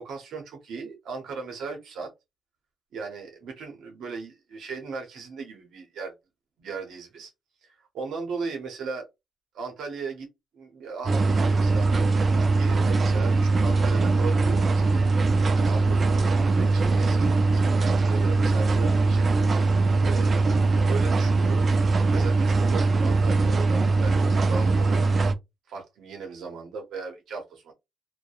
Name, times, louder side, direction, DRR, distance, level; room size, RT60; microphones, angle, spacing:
voice 1, 0.0-2.1 2.9-6.1 6.6-7.3 7.6-9.1 9.5-10.3 10.5-12.1 12.6-15.0 15.6-19.3 19.7-21.7 22.0-25.1 25.7-27.7, right 5 dB, 75° right, 0.7 m, -37 dB
sound 1, 11.0-25.3, right 3 dB, 40° right, 0.4 m, -21 dB
2.6 x 2.1 x 2.3 m
cardioid pair, 90°, 0 cm